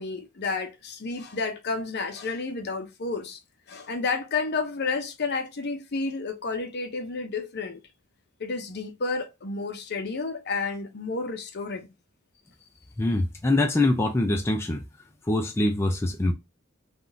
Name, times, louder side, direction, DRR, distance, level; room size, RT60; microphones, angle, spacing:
voice 1, 0.0-3.4 3.7-7.8 8.4-11.9, left 4 dB, 55° left, 0.6 m, -31 dB
voice 2, 13.0-14.8 15.2-16.3, left 2 dB, 10° left, 0.3 m, -24 dB
3.5 x 2.3 x 2.5 m
head